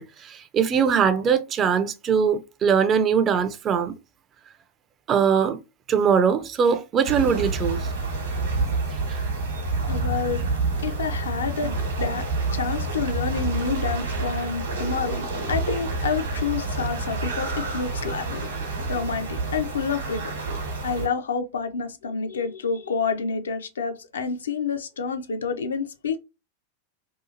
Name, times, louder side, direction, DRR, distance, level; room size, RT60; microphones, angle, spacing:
voice 1, 0.0-3.9 5.1-5.6 5.9-7.9, right 7 dB, 30° right, 0.3 m, -21 dB
sound 1, 7.0-21.1, right 3 dB, 65° right, 1.0 m, -28 dB
voice 2, 9.9-10.5 10.8-20.4 20.8-26.2, left 5 dB, 70° left, 0.4 m, -29 dB
2.8 x 2.3 x 2.4 m
figure-of-eight pair, 90°, 0 cm